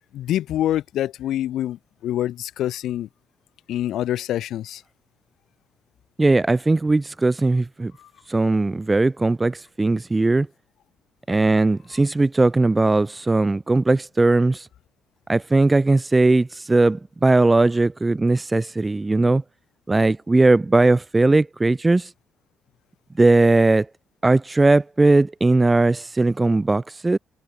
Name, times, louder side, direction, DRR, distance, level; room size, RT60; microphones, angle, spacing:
voice 1, 0.0-3.1 3.7-4.8, left 12 dB, 80° left, 1.8 m, -26 dB
voice 2, 6.2-7.9 8.3-10.5 11.3-14.7 15.3-19.4 19.9-22.1 23.2-23.9 24.2-27.2, right 2 dB, 20° right, 1.1 m, -18 dB
cardioid pair, 90°, 0 cm